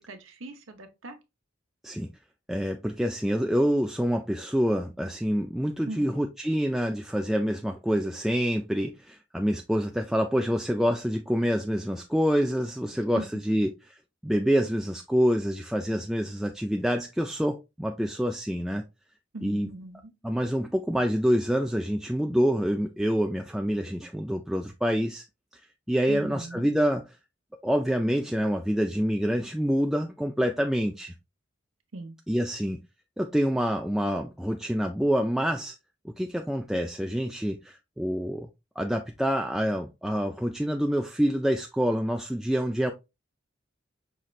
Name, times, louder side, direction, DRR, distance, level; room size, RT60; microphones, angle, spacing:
voice 1, 0.1-1.2 5.8-6.1 13.2-13.3 19.3-20.1 26.1-26.7 31.9-32.1, right 2 dB, 85° right, 1.0 m, -40 dB
voice 2, 2.5-13.7 14.2-18.8 19.4-19.7 20.2-25.2 25.9-27.0 27.6-31.1 32.3-32.8 33.2-35.7 36.0-38.5 38.8-42.9, equal, ahead, 0.3 m, -26 dB
5.6 x 3.1 x 2.4 m
head